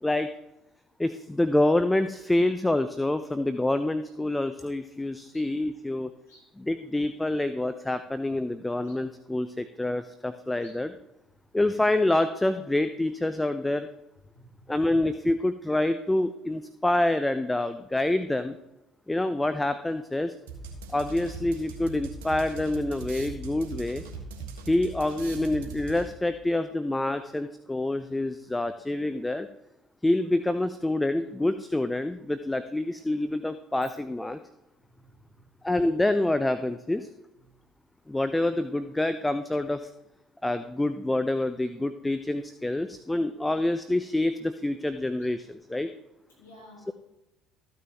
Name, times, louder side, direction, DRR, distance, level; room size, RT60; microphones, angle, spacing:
voice 1, 1.0-6.1 6.6-10.9 11.5-13.9 14.7-18.6 19.1-20.3 20.9-24.0 24.7-29.5 30.0-34.4 35.6-37.1 38.1-39.9 40.4-45.9, left 1 dB, 10° left, 11 dB, 0.6 m, -27 dB
voice 2, 14.3-14.7 35.0-35.2 46.4-46.9, equal, 85° left, -2 dB, 3.6 m, -53 dB
sound 1, 20.5-26.3, right 4 dB, 80° right, 1.6 m, -40 dB
14.0 x 9.1 x 3.0 m, 0.93 s
hypercardioid pair, 55°, 0 cm